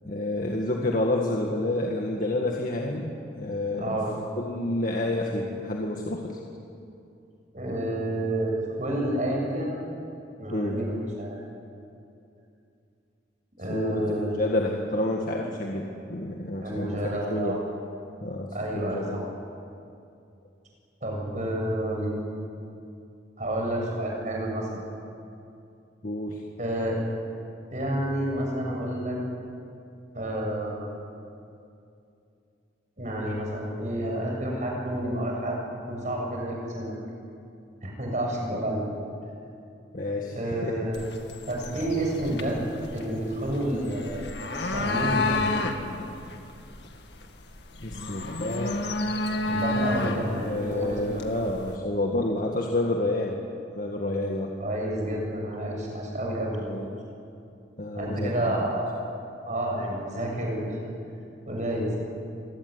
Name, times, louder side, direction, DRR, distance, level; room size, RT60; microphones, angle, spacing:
voice 1, 0.0-4.0 4.4-6.4 10.5-10.8 13.7-17.0 17.3-17.6 18.2-19.2 22.8-22.9 26.0-26.4 39.9-40.8 47.8-48.8 50.4-53.4 53.7-54.5 56.7-56.9 57.8-58.5 61.9-62.0, left 1 dB, 50° left, 0 dB, 1.9 m, -29 dB
voice 2, 3.8-4.1 7.5-9.8 10.4-11.4 13.6-14.4 16.6-17.6 18.5-19.2 21.0-22.2 23.4-24.8 26.6-27.0 27.7-29.2 30.1-31.0 33.0-35.6 35.9-36.9 37.8-38.8 40.3-41.0 41.5-42.6 42.9-45.5 49.5-51.4 54.6-56.6 57.9-59.0 59.5-60.7 61.5-61.9, right 1 dB, 45° right, -1 dB, 7.0 m, -29 dB
sound 1, 40.9-51.8, left 2 dB, 70° left, 2.1 m, -31 dB
26.5 x 17.5 x 9.8 m, 2.6 s
head